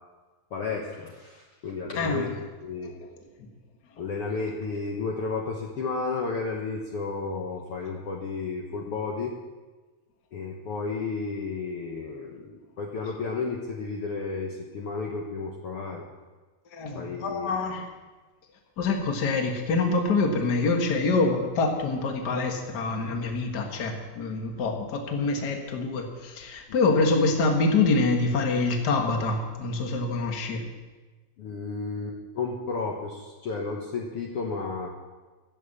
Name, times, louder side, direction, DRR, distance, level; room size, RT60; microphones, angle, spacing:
voice 1, 0.5-2.3 2.6-2.9 4.0-9.3 10.3-16.1 17.0-17.6 31.4-34.9, left 4 dB, 60° left, -1 dB, 1.9 m, -32 dB
voice 2, 2.0-2.3 16.7-17.9 18.8-30.6, left 3 dB, 40° left, 2 dB, 1.8 m, -25 dB
16.5 x 7.3 x 7.2 m, 1.3 s
omnidirectional pair, 3.4 m